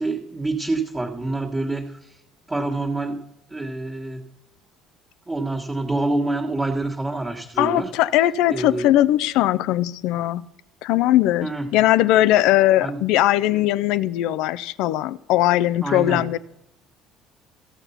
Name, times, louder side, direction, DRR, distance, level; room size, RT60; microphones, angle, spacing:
voice 1, 0.0-2.2 2.5-3.2 3.5-4.2 5.3-7.9 8.5-8.9 11.4-11.7 12.8-13.0 15.8-16.2, right 2 dB, 20° right, -7 dB, 1.7 m, -26 dB
voice 2, 7.6-10.4 10.8-16.4, left 14 dB, 70° left, 18 dB, 0.4 m, -19 dB
14.5 x 6.7 x 5.7 m, 0.84 s
hypercardioid pair, 65°, 0 cm